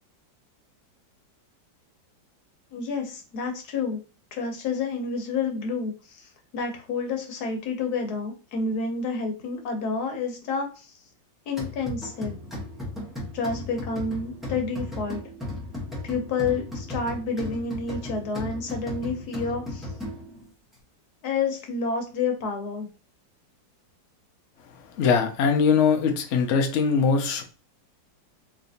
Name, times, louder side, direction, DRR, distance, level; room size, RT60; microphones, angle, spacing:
voice 1, 2.7-4.0 4.3-11.0 11.5-12.4 13.3-15.2 16.0-19.9 21.2-22.9, left 4 dB, 65° left, 1.3 m, -29 dB
sound 1, 11.6-20.5, left 1 dB, ahead, 0.6 m, -36 dB
voice 2, 24.9-27.4, left 5 dB, 85° left, 0.6 m, -21 dB
3.2 x 2.8 x 2.7 m
omnidirectional pair, 2.0 m